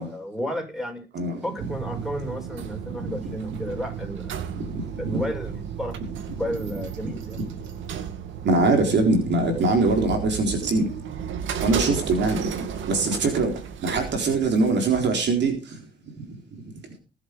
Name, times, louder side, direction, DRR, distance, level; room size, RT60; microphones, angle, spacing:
voice 1, 0.0-1.1 1.4-4.3 5.0-6.0 6.4-7.4, equal, ahead, 6.7 m, -32 dB
sound 1, 1.6-15.0, right 8 dB, 80° right, 2.3 m, -34 dB
voice 2, 4.5-5.2 7.3-7.4 8.4-11.0 11.6-12.5 12.9-13.5 13.8-15.5, right 3 dB, 60° right, 4.0 m, -22 dB
19.0 x 8.3 x 5.2 m
cardioid pair, 90°, 20 cm